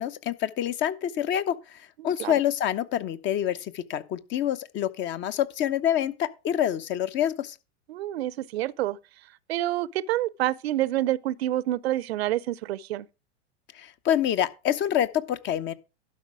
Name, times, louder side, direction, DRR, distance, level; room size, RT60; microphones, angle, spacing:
voice 1, 0.0-7.5 13.7-15.7, left 10 dB, 35° left, 0.9 m, -27 dB
voice 2, 2.0-2.3 7.9-9.0 9.5-13.1, right 14 dB, 65° right, 0.6 m, -28 dB
12.0 x 5.5 x 4.9 m
hypercardioid pair, 105°, 34 cm